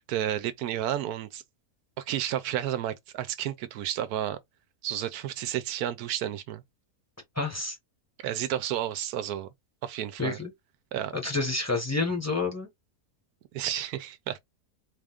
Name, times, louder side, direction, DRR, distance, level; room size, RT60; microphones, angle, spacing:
voice 1, 0.1-1.4 2.0-4.4 4.8-6.6 8.2-9.5 9.8-10.4 10.9-11.1 13.5-14.4, right 11 dB, 85° right, 1.1 m, -31 dB
voice 2, 7.4-7.8 10.2-10.5 11.1-12.7, left 3 dB, 10° left, 1.0 m, -29 dB
3.9 x 2.4 x 3.5 m
omnidirectional pair, 1.6 m